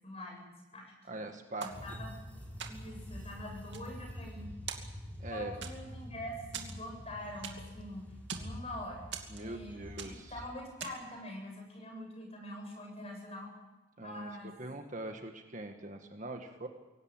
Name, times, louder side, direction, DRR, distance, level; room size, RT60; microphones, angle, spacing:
voice 1, 0.0-0.9 1.6-2.1 2.7-4.5 5.3-8.1 8.3-13.5 14.0-14.6, left 1 dB, 30° left, 2 dB, 7.6 m, -45 dB
voice 2, 1.1-1.8 5.2-5.6 9.3-10.3 14.0-14.3 14.6-16.7, right 2 dB, 40° right, 5 dB, 1.8 m, -42 dB
sound 1, 1.6-2.3 2.6-3.1 3.5-4.4 4.7-5.2 5.6-6.1 6.5-7.8 8.1-8.6 9.1-9.7 10.0-10.3 10.8-11.2, right 7 dB, 60° right, 2.7 m, -44 dB
sound 2, 1.7-10.8, equal, 10° left, 6.5 m, -47 dB
24.5 x 17.5 x 9.0 m, 1.1 s
head